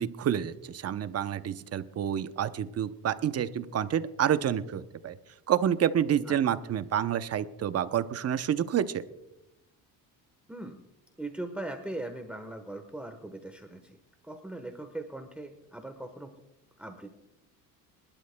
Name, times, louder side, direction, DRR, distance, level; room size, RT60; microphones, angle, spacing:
voice 1, 0.0-5.2 5.5-9.0, right 9 dB, 40° right, 12 dB, 0.7 m, -28 dB
voice 2, 11.2-14.0 14.2-16.3 16.8-17.1, right 2 dB, 5° right, 6 dB, 1.1 m, -40 dB
24.5 x 12.0 x 2.2 m, 0.94 s
cardioid pair, 105°, 37 cm